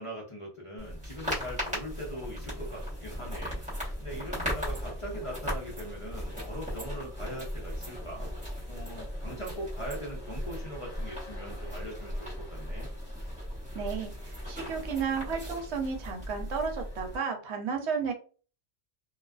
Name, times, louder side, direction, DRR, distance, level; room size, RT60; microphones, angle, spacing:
voice 1, 0.0-8.3 8.7-12.9, equal, 35° left, -2 dB, 0.5 m, -41 dB
sound 1, 0.8-17.2, equal, 5° right, 0.8 m, -37 dB
voice 2, 13.7-18.1, right 6 dB, 75° right, 4 dB, 0.9 m, -33 dB
2.3 x 2.3 x 2.2 m, 0.38 s
omnidirectional pair, 1.2 m